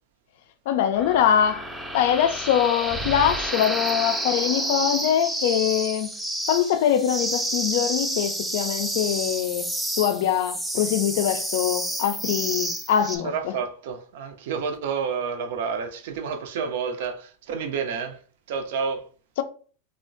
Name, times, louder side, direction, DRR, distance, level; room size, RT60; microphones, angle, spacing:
voice 1, 0.7-1.7 1.9-6.1 6.5-9.7 10.0-13.5 19.4-19.5, left 9 dB, 60° left, 0.3 m, -23 dB
sound 1, 1.0-13.2, right 1 dB, 5° right, 0.5 m, -30 dB
voice 2, 13.2-18.2 18.5-19.1, right 6 dB, 65° right, 0.4 m, -29 dB
3.3 x 2.0 x 2.5 m
hypercardioid pair, 95°, 0 cm